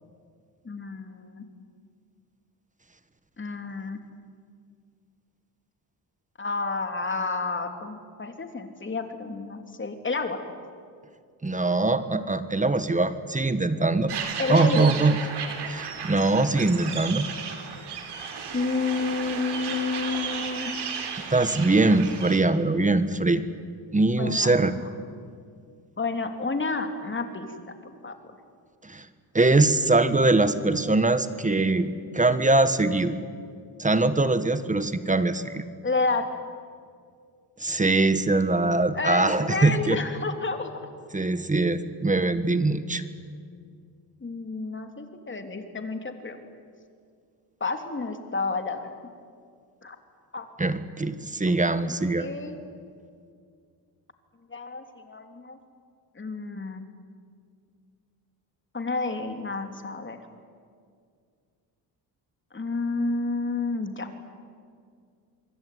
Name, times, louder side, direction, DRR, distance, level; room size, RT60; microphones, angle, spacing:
voice 1, 0.6-1.4 3.4-4.0 6.4-10.4 14.4-14.9 18.5-20.7 24.2-24.5 26.0-27.7 28.0-28.1 35.8-36.3 38.9-40.7 44.2-46.4 47.6-48.9 49.8-50.0 50.3-50.5 51.9-52.6 54.5-55.6 56.1-56.8 58.7-60.2 62.5-64.1, left 3 dB, 25° left, 6 dB, 3.2 m, -30 dB
voice 2, 11.4-14.1 14.5-15.2 15.7-17.3 21.3-23.4 23.9-24.7 28.8-29.0 29.3-31.9 32.1-33.1 33.8-35.6 37.6-40.0 41.1-43.0 50.6-52.3, right 2 dB, 20° right, 11 dB, 1.5 m, -22 dB
sound 1, 14.1-22.4, right 6 dB, 70° right, 4.5 m, -34 dB
26.5 x 23.5 x 9.5 m, 2.2 s
cardioid pair, 100°, 42 cm